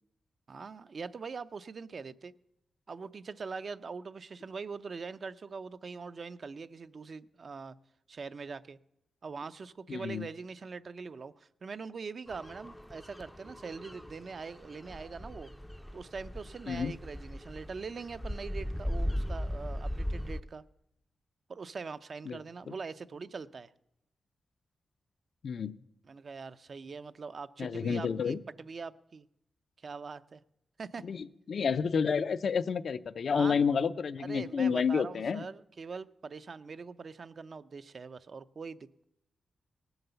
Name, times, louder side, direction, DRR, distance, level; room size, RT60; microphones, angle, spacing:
voice 1, 0.5-2.3 2.9-7.7 8.1-8.8 9.2-15.5 15.9-20.6 21.5-23.7 26.1-29.3 29.8-30.4 30.8-31.1 33.3-33.6 34.2-39.1, right 4 dB, 50° right, 13 dB, 0.5 m, -42 dB
voice 2, 9.9-10.3 16.7-16.9 22.3-22.4 22.7-22.8 25.4-25.8 27.6-28.4 31.0-35.4, left 6 dB, 65° left, 12 dB, 0.5 m, -30 dB
sound 1, 12.3-20.4, equal, 5° left, 0.4 m, -38 dB
18.5 x 7.9 x 6.8 m, 0.82 s
wide cardioid pair, 110°, 0 cm